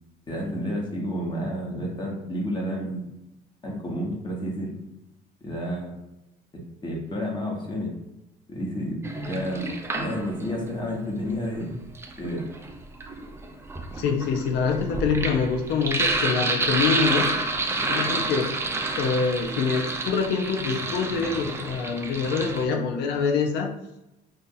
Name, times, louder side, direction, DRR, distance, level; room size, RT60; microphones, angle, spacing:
voice 1, 0.3-3.1 3.6-4.8 5.4-5.9 6.8-7.9 8.5-11.7 12.2-12.5, equal, 25° left, -2 dB, 1.1 m, -30 dB
Sink (filling or washing), 9.0-10.6 11.7-22.6, right 2 dB, 15° right, 0.4 m, -29 dB
voice 2, 14.0-17.3 17.9-18.6 19.0-23.7, left 5 dB, 80° left, 3 dB, 0.6 m, -25 dB
2.7 x 2.5 x 3.8 m, 0.92 s
cardioid pair, 110°, 17 cm